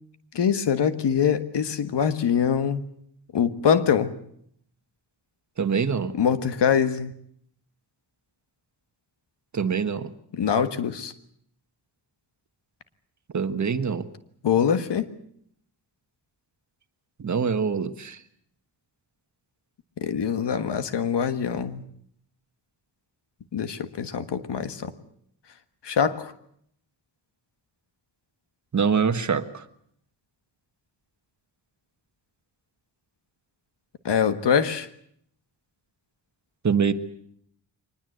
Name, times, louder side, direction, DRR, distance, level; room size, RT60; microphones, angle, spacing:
voice 1, 0.3-2.8 3.3-4.2 6.1-7.1 10.3-11.1 14.4-15.1 20.0-21.8 23.5-24.9 25.8-26.3 34.1-34.9, left 7 dB, 80° left, 11 dB, 1.6 m, -24 dB
voice 2, 5.6-6.1 9.5-10.1 13.3-14.0 17.2-18.2 28.7-29.6 36.6-36.9, right 6 dB, 45° right, 10 dB, 1.4 m, -24 dB
24.0 x 20.0 x 8.0 m, 0.67 s
wide cardioid pair, 135°, 41 cm